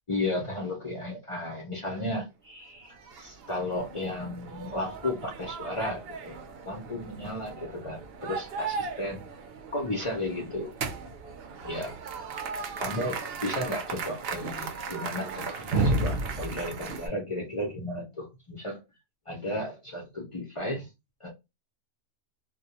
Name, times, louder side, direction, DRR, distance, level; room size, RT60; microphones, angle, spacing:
voice 1, 0.1-6.4 6.6-9.3 9.7-10.7 11.6-12.0 12.8-18.8 19.3-20.9 21.2-21.3, left 1 dB, 50° left, 0.3 m, -34 dB
sound 1, 2.9-17.1, right 3 dB, 60° right, 0.7 m, -35 dB
2.3 x 2.1 x 2.8 m
omnidirectional pair, 1.4 m